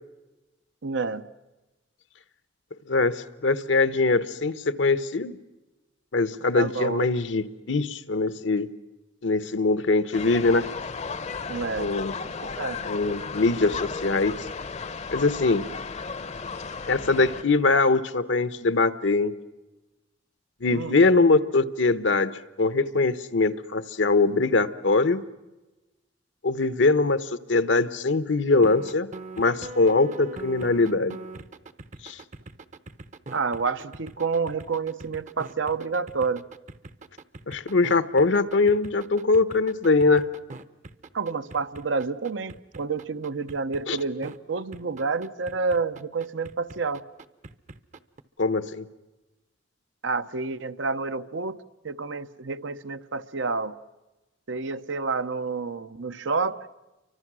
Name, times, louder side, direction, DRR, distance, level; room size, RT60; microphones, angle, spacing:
voice 1, 0.8-1.3 6.5-7.1 11.5-11.9 12.6-12.8 20.7-21.0 33.3-36.5 41.1-47.0 50.0-51.6 51.8-53.8 54.5-56.6, right 4 dB, 80° right, 0.8 m, -29 dB
voice 2, 2.9-5.4 6.1-8.7 9.2-10.7 11.8-12.1 12.8-14.5 15.1-15.7 16.9-19.3 20.6-22.3 22.6-25.2 26.4-29.1 29.4-31.2 32.0-32.2 37.5-40.3 43.9-44.0 48.4-48.9, left 3 dB, 70° left, 1.0 m, -22 dB
sound 1, 10.1-17.4, left 4 dB, 35° left, 0.7 m, -35 dB
sound 2, 28.6-44.4 44.7-48.2, right 3 dB, 40° right, 0.8 m, -42 dB
29.5 x 24.5 x 6.2 m
head